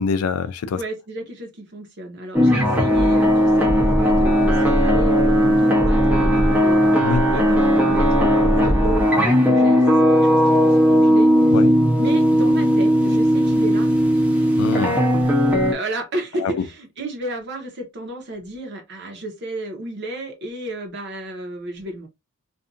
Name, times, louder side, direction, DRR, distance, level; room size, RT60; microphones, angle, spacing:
voice 1, 0.0-0.8 7.0-7.3 11.5-11.7 14.6-15.0 16.4-16.7, left 5 dB, 80° left, 0.3 m, -24 dB
voice 2, 0.8-9.9 10.3-11.5 12.0-13.9 15.7-22.1, right 1 dB, 50° right, 0.9 m, -32 dB
sound 1, 2.3-15.7, equal, 5° right, 0.7 m, -17 dB
2.6 x 2.4 x 2.4 m
head